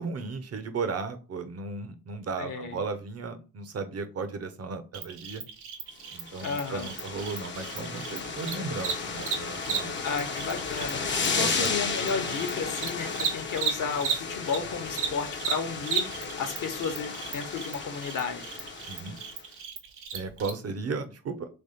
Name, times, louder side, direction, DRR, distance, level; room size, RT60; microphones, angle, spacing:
voice 1, 0.0-5.4 6.1-10.0 11.2-11.7 18.9-19.2 20.1-21.5, right 4 dB, 35° right, 9 dB, 0.9 m, -35 dB
voice 2, 2.4-2.7 6.4-6.9 10.0-18.5, left 5 dB, 45° left, 6 dB, 1.1 m, -33 dB
Cricket, 4.9-14.6 14.9-20.5, right 7 dB, 70° right, 1.0 m, -35 dB
sound 1, 6.1-19.4, left 4 dB, 25° left, 0.8 m, -34 dB
3.5 x 3.1 x 4.2 m, 0.33 s
hypercardioid pair, 55°, 43 cm